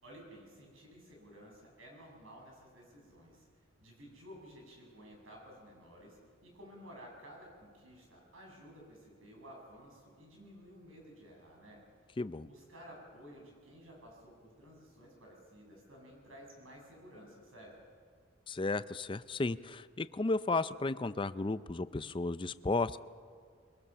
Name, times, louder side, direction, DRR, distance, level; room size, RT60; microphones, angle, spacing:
voice 1, 0.0-3.5 3.8-11.8 12.4-17.7, equal, 85° right, 0 dB, 7.0 m, -54 dB
voice 2, 12.2-12.5 18.5-23.0, left 3 dB, 25° left, 14 dB, 0.5 m, -34 dB
23.0 x 22.0 x 6.9 m, 2.2 s
head